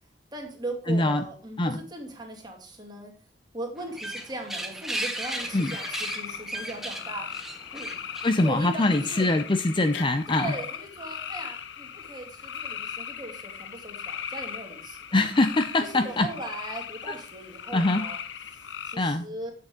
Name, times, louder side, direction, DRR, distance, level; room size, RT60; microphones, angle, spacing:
voice 1, 0.3-3.1 3.5-7.3 7.7-8.0 8.4-9.3 10.3-15.0 15.7-18.2 18.8-19.5, right 1 dB, 25° right, 2 dB, 2.2 m, -38 dB
voice 2, 0.9-1.2 1.6-1.8 5.5-5.8 8.2-10.5 15.1-16.3 17.7-18.1 18.9-19.3, left 2 dB, 25° left, 9 dB, 0.5 m, -23 dB
sound 1, 3.8-9.2, right 1 dB, ahead, 1.1 m, -36 dB
sound 2, 5.2-19.0, left 8 dB, 70° left, 0.7 m, -38 dB
8.6 x 6.5 x 5.1 m, 0.39 s
head